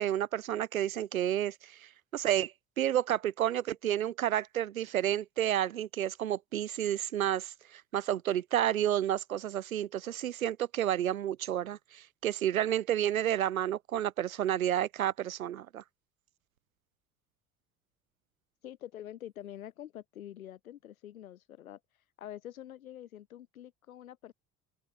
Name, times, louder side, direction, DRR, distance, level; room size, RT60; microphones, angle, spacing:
voice 1, 0.0-1.5 2.1-2.5 2.8-15.8, right 11 dB, 85° right, 0.8 m, -30 dB
voice 2, 18.6-21.8 22.2-24.3, left 11 dB, 80° left, 2.5 m, -46 dB
open air
figure-of-eight pair, 55°, 41 cm